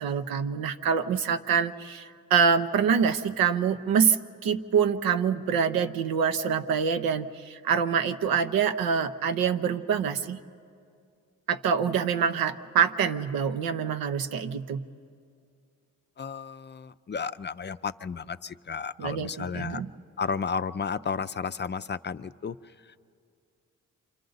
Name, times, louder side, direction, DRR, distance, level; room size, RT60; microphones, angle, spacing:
voice 1, 0.0-4.2 4.4-10.4 11.5-14.9 19.0-19.9, right 7 dB, 80° right, 9 dB, 0.8 m, -25 dB
voice 2, 16.2-19.8 20.2-23.0, left 6 dB, 30° left, 12 dB, 0.5 m, -33 dB
28.5 x 26.0 x 4.0 m, 2.4 s
supercardioid pair, 60°, 35 cm